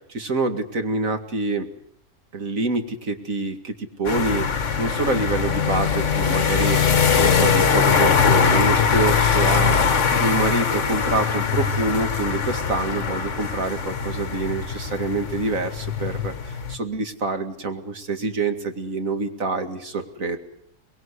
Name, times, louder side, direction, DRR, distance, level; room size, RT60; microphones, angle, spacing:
voice 1, 0.1-1.7 2.3-4.5 4.8-6.8 7.2-9.8 10.2-20.4, right 3 dB, 65° right, 7 dB, 2.5 m, -26 dB
sound 1, 4.0-16.7, left 6 dB, 55° left, 1.7 m, -21 dB
23.5 x 22.0 x 8.3 m, 0.70 s
omnidirectional pair, 1.6 m